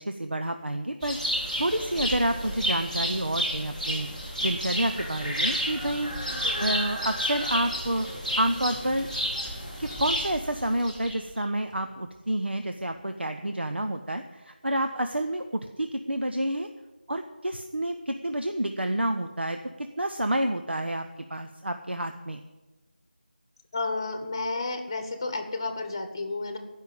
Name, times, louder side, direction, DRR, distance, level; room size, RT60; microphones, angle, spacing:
voice 1, 0.0-4.1 4.4-6.1 6.4-8.1 8.4-9.1 9.8-16.7 17.1-21.0 21.3-22.4, right 1 dB, 80° right, 6 dB, 0.9 m, -29 dB
sound 1, 1.0-11.4, equal, 5° right, 1.0 m, -31 dB
sound 2, 4.1-13.0, left 1 dB, 50° right, 3.8 m, -49 dB
voice 2, 6.2-6.8 23.7-26.6, left 3 dB, 20° left, 7 dB, 1.1 m, -32 dB
14.5 x 5.7 x 8.8 m, 1.2 s
figure-of-eight pair, 170°, 6 cm